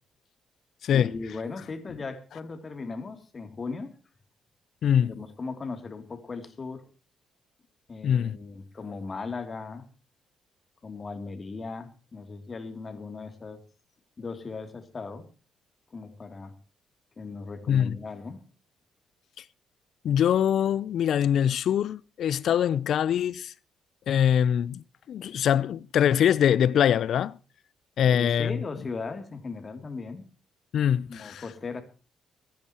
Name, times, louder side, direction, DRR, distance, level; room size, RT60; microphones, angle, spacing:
voice 1, 0.9-4.0 5.0-6.9 7.9-9.8 10.8-13.6 14.2-15.3 15.9-16.5 17.2-18.4 28.0-30.3 31.1-31.8, left 4 dB, 35° left, 3.0 m, -37 dB
voice 2, 4.8-5.2 8.0-8.4 17.7-18.0 20.0-23.5 24.1-27.4 28.0-28.5 30.7-31.4, left 9 dB, 65° left, 0.6 m, -23 dB
25.5 x 10.5 x 3.0 m
cardioid pair, 90°, 0 cm